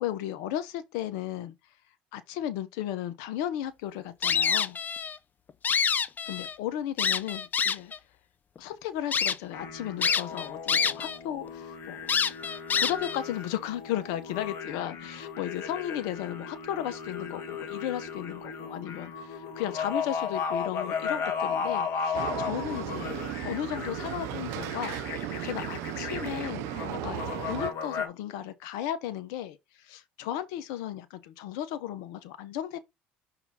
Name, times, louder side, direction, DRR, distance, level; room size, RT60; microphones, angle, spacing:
voice 1, 0.0-1.5 2.1-4.8 6.3-7.9 8.6-12.1 12.8-32.8, left 11 dB, 80° left, 0.9 m, -35 dB
sound 1, 4.2-5.2 5.5-6.6 7.0-8.0 8.6-8.7 9.1-9.4 10.0-11.2 11.5-11.6 12.1-13.2, left 6 dB, 35° left, 0.7 m, -26 dB
sound 2, 9.5-28.1, left 6 dB, 55° left, 2.0 m, -35 dB
sound 3, 22.1-27.7, right 17 dB, 75° right, 0.5 m, -36 dB
5.9 x 3.9 x 4.1 m
supercardioid pair, 80°, 5 cm